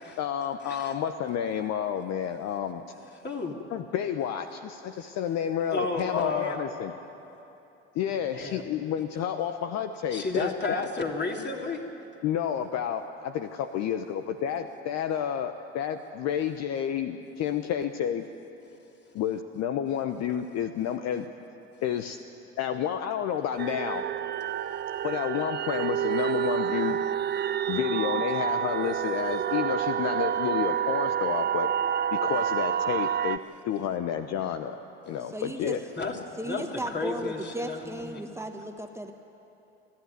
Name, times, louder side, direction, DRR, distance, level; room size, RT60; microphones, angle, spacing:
voice 1, 0.2-2.8 3.7-6.9 7.9-10.9 12.2-18.2 19.1-21.3 21.8-22.2 22.6-24.1 25.0-27.0 27.7-31.7 32.1-33.4 33.7-34.8 35.1-35.8, left 9 dB, 55° left, 8 dB, 1.0 m, -30 dB
voice 2, 3.2-3.6 5.7-6.6 8.3-8.6 10.1-11.8 36.0-36.2 36.4-38.2, left 3 dB, 35° left, 1 dB, 3.2 m, -32 dB
sound 1, 23.6-33.4, right 9 dB, 30° right, 0.7 m, -28 dB
voice 3, 35.3-35.8 36.4-39.1, right 1 dB, 10° right, 4 dB, 1.3 m, -35 dB
28.5 x 11.5 x 9.4 m, 2.9 s
hypercardioid pair, 70°, 32 cm